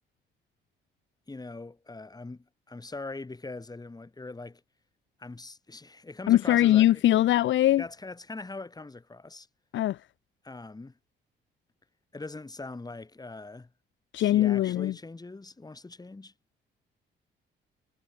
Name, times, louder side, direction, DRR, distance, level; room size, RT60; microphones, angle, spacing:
voice 1, 1.3-4.6 5.2-7.0 7.8-9.5 10.4-11.0 12.1-13.7 14.2-16.3, left 3 dB, 20° left, 5.0 m, -41 dB
voice 2, 6.3-7.8 9.7-10.0 14.1-14.9, left 13 dB, 75° left, 0.9 m, -21 dB
cardioid pair, 90°, 20 cm